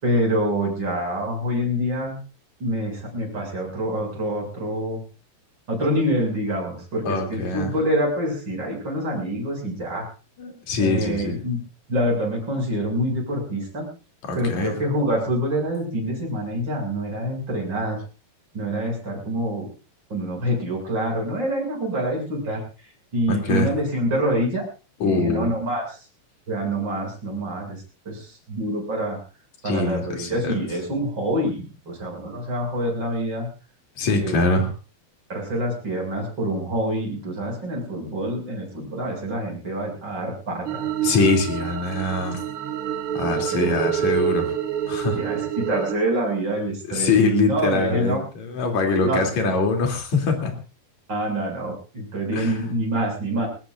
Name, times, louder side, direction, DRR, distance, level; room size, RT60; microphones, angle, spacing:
voice 1, 0.0-2.2 2.6-5.0 5.7-10.1 10.8-11.6 11.9-13.9 14.3-18.0 18.5-19.7 20.1-22.6 23.1-24.7 25.0-25.9 26.5-29.2 29.6-33.5 34.1-34.5 35.3-40.8 43.3-43.7 45.1-48.2 49.0-49.2 51.1-53.5, equal, 25° right, -1 dB, 8.1 m, -26 dB
voice 2, 7.1-7.7 10.4-11.4 14.2-14.8 23.3-23.7 25.0-25.5 29.6-30.6 34.0-34.7 41.0-42.4 43.1-44.5 44.9-45.2 46.9-50.5 52.3-52.6, left 3 dB, 45° left, 3 dB, 4.1 m, -23 dB
sound 1, 40.7-45.9, right 10 dB, 85° right, 1.2 m, -27 dB
22.5 x 20.0 x 2.6 m, 0.34 s
omnidirectional pair, 4.7 m